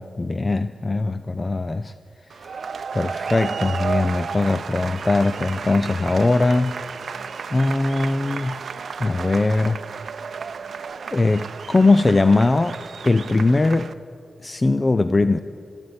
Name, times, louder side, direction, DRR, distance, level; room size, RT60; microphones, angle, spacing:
voice 1, 0.0-1.9 2.4-2.7 2.9-6.8 7.5-8.6 9.0-9.8 11.1-13.9 14.4-15.4, left 2 dB, 30° left, 12 dB, 0.4 m, -20 dB
sound 1, 2.3-13.9, right 5 dB, 70° right, 0.6 m, -33 dB
14.5 x 8.9 x 9.6 m, 2.3 s
cardioid pair, 75°, 0 cm